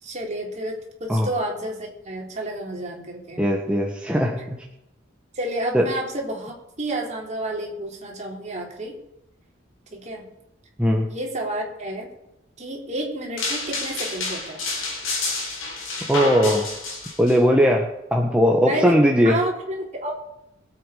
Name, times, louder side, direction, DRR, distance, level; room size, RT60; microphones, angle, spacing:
voice 1, 0.0-3.4 5.3-8.9 9.9-10.3 11.1-12.1 12.6-14.7 18.7-20.1, right 1 dB, 35° right, -1 dB, 3.4 m, -30 dB
voice 2, 3.4-4.4 5.7-5.8 10.8-11.1 16.1-16.7 17.2-19.4, equal, 5° right, 0 dB, 1.3 m, -19 dB
sound 1, 13.4-17.4, left 3 dB, 90° left, 4.5 m, -29 dB
22.0 x 8.3 x 5.0 m, 0.85 s
head